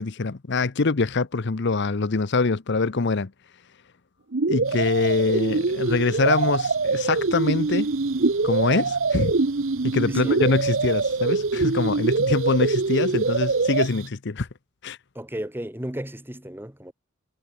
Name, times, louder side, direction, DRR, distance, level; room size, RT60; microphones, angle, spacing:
voice 1, 0.0-3.3 4.5-7.9 8.4-9.4 9.8-14.5 14.8-15.0, left 3 dB, 55° left, 0.8 m, -24 dB
sound 1, 4.3-13.9, right 3 dB, 55° right, 0.8 m, -24 dB
sound 2, 4.6-14.1, right 7 dB, 90° right, 2.6 m, -44 dB
voice 2, 15.2-16.9, right 1 dB, 10° right, 2.0 m, -34 dB
head